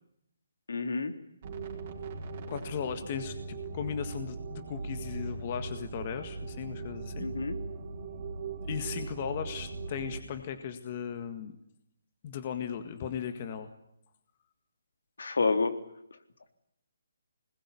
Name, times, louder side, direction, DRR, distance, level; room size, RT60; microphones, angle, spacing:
voice 1, 0.7-1.1 7.2-7.6 15.2-15.8, left 4 dB, 75° left, 6 dB, 3.5 m, -28 dB
sound 1, 1.4-10.2, right 3 dB, 25° right, 4.6 m, -39 dB
voice 2, 2.5-7.3 8.6-11.5 12.2-13.7, left 8 dB, 25° left, 7 dB, 1.8 m, -37 dB
25.5 x 21.0 x 10.0 m, 0.78 s
hypercardioid pair, 175°, 0 cm